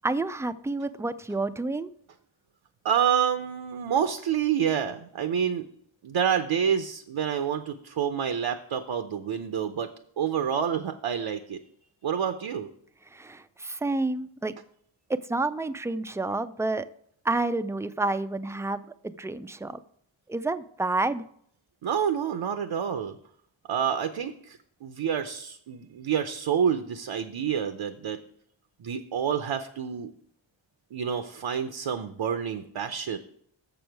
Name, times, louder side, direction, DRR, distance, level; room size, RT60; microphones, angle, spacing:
voice 1, 0.0-1.9 13.1-14.5 15.3-16.9 17.2-19.8 20.3-21.2, right 2 dB, 5° right, 13 dB, 0.3 m, -29 dB
voice 2, 2.8-5.7 6.0-9.9 10.2-11.6 12.0-12.7 21.8-23.1 23.7-28.2 28.8-30.1 30.9-33.2, right 8 dB, 70° right, 8 dB, 0.7 m, -28 dB
7.1 x 7.0 x 4.6 m, 0.65 s
wide cardioid pair, 100°, 49 cm